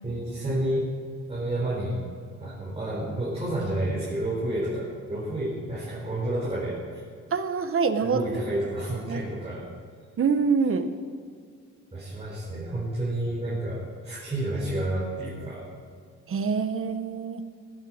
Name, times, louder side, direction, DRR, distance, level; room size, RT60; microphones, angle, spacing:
voice 1, 0.0-0.9 1.3-2.0 2.4-7.0 8.0-9.7 11.9-15.7, right 1 dB, 20° right, -6 dB, 4.4 m, -30 dB
voice 2, 7.3-8.2 9.0-9.2 10.2-10.9 16.3-17.4, right 5 dB, 45° right, 9 dB, 1.2 m, -25 dB
17.0 x 10.5 x 5.1 m, 2.1 s
cardioid pair, 90°, 30 cm